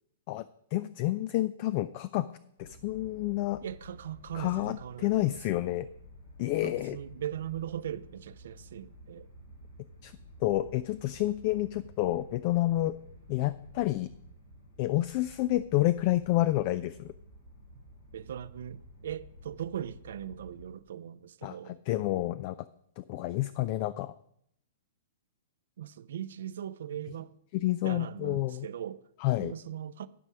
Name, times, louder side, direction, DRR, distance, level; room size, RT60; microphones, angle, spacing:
voice 1, 0.7-2.3 2.6-3.6 4.3-5.9 6.4-7.0 10.0-10.1 10.4-13.0 13.3-14.1 14.8-17.1 21.4-22.6 23.0-24.1 27.5-28.7 29.2-29.5, left 16 dB, 45° left, 0.4 m, -29 dB
sound 1, 2.6-20.7, equal, 80° left, 3.7 m, -52 dB
voice 2, 3.6-5.4 6.6-9.3 18.1-21.8 25.8-27.4 27.8-29.0 29.4-30.1, right 10 dB, 65° right, 0.5 m, -39 dB
12.0 x 5.4 x 6.0 m
figure-of-eight pair, 110°, 0 cm